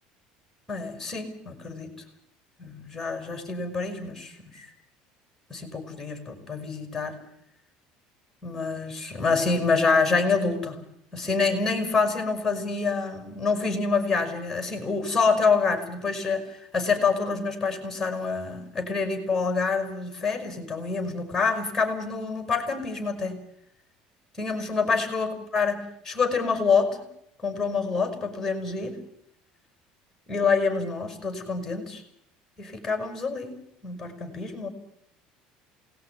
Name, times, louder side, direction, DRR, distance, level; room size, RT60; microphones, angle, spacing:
voice 1, 0.7-1.9 2.6-4.7 5.5-7.2 8.4-10.8 11.1-23.4 24.4-27.1 27.4-29.0 30.3-32.0 32.6-34.7, left 4 dB, 5° left, 7 dB, 6.2 m, -27 dB
28.0 x 18.5 x 9.7 m, 0.77 s
cardioid pair, 155°, 2 cm